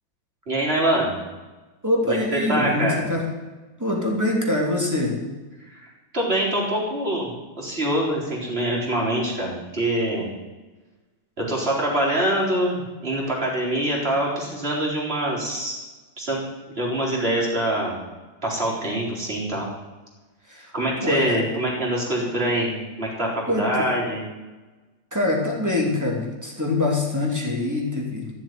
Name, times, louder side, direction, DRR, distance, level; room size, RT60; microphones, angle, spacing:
voice 1, 0.5-1.2 2.1-3.0 6.1-7.3 7.6-10.3 11.4-15.8 16.2-16.5 16.7-18.0 18.4-19.7 20.7-22.7 23.0-24.2, right 1 dB, 30° right, -4 dB, 4.2 m, -24 dB
voice 2, 1.8-3.2 3.8-5.1 20.5-20.7 21.0-21.4 23.5-24.0 25.1-28.3, left 2 dB, 10° right, -1 dB, 3.0 m, -24 dB
14.0 x 7.5 x 9.4 m, 1.2 s
omnidirectional pair, 2.1 m